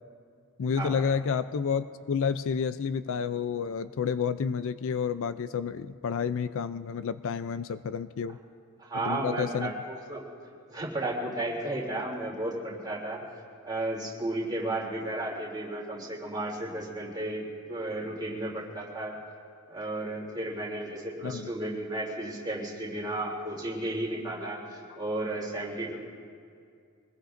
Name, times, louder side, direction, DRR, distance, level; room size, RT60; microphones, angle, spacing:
voice 1, 0.6-8.4 8.9-9.7 21.2-21.5, left 6 dB, 60° left, 13 dB, 0.4 m, -30 dB
voice 2, 8.8-10.2 10.7-13.2 13.6-19.2 19.7-26.0, right 1 dB, 20° right, -4 dB, 2.9 m, -33 dB
25.0 x 20.5 x 2.6 m, 2.3 s
head